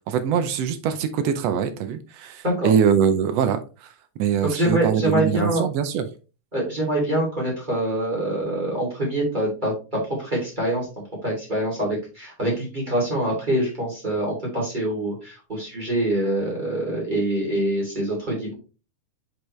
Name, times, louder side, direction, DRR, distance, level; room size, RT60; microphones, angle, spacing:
voice 1, 0.1-3.9 4.2-6.0, right 8 dB, 80° right, 9 dB, 1.5 m, -23 dB
voice 2, 4.5-5.6 6.5-9.7 10.2-10.9 11.2-18.5, right 1 dB, 15° right, -4 dB, 2.7 m, -25 dB
6.2 x 5.1 x 3.1 m, 0.33 s
omnidirectional pair, 3.6 m